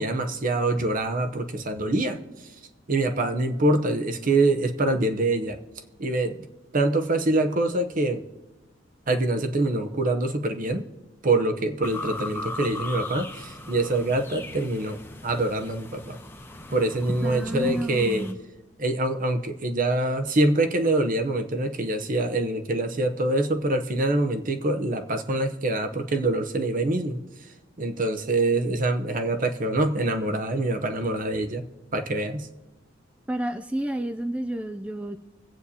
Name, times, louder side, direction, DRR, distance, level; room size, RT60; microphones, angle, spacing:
voice 1, 0.0-2.2 2.9-5.6 6.0-6.5 6.7-8.2 9.1-10.9 11.2-16.2 16.7-18.2 18.8-27.2 27.8-31.6 31.9-32.5, right 2 dB, 45° right, 6 dB, 0.8 m, -25 dB
sound 1, 11.8-18.3, left 2 dB, 10° left, 0.9 m, -38 dB
voice 2, 17.2-18.4 33.3-35.2, right 1 dB, 5° right, 9 dB, 0.3 m, -30 dB
24.5 x 8.3 x 2.8 m, 1.1 s
head